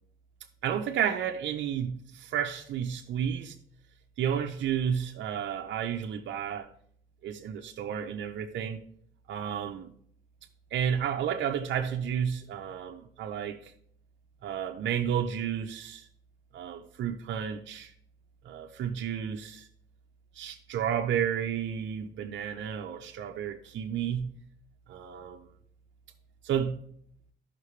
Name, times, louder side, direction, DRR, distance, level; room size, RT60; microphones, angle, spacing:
voice 1, 0.6-3.5 4.2-6.7 7.2-8.8 9.3-9.9 10.7-13.7 14.4-16.0 16.5-17.9 18.4-19.7 20.3-24.3 24.9-25.4 26.4-26.8, right 8 dB, 70° right, 0.8 m, -31 dB
13.5 x 5.8 x 3.3 m
cardioid pair, 90°, 20 cm